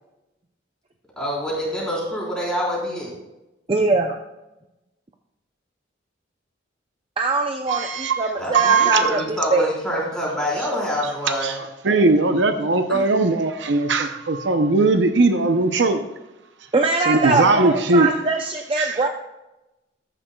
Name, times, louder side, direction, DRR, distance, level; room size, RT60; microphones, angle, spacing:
voice 1, 1.2-3.1 8.4-11.5 12.9-13.3, equal, 5° left, -6 dB, 4.0 m, -26 dB
voice 2, 3.7-4.1 7.2-9.7 16.7-19.1, right 3 dB, 30° right, 4 dB, 0.5 m, -22 dB
voice 3, 7.7-8.2 8.5-9.2 11.4-11.5 11.8-16.0 17.1-18.1 18.8-19.0, right 3 dB, 70° right, 7 dB, 0.7 m, -19 dB
14.0 x 10.0 x 2.3 m, 0.98 s
head